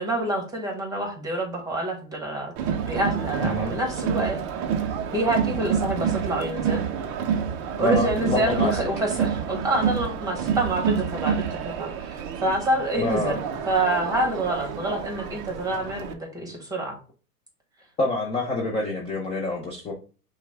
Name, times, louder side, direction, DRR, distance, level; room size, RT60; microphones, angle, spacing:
voice 1, 0.0-2.5 2.8-4.4 5.1-6.8 7.8-13.4 13.7-17.0, right 1 dB, 10° right, 2 dB, 1.4 m, -27 dB
Crowd, 2.6-16.1, right 7 dB, 30° right, 0.5 m, -28 dB
voice 2, 3.4-3.7 7.8-8.8 13.0-13.4 18.0-19.9, left 2 dB, 15° left, -2 dB, 0.6 m, -27 dB
5.8 x 2.3 x 3.5 m, 0.36 s
hypercardioid pair, 130°, 46 cm